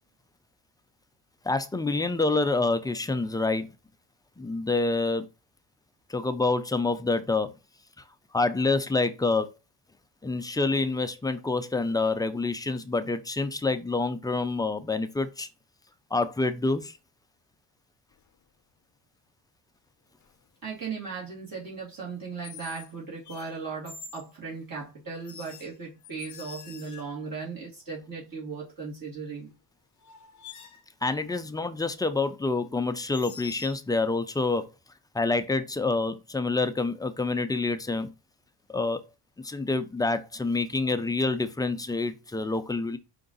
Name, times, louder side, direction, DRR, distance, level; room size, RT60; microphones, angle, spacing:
voice 1, 1.4-3.7 4.4-5.2 6.1-7.5 8.3-9.5 10.2-15.5 16.1-16.9 31.0-34.7 35.1-38.1 38.7-39.0 39.4-43.0, left 3 dB, 10° left, 0.3 m, -27 dB
sound 1, 18.1-18.4 20.2-20.5 22.4-22.9 23.2-24.3 25.2-27.3 29.5-29.6 30.0-30.9 33.1-33.8, left 6 dB, 40° left, 0.6 m, -46 dB
voice 2, 20.6-29.5, right 5 dB, 45° right, 2.1 m, -37 dB
4.7 x 2.6 x 3.8 m
cardioid pair, 95°, 46 cm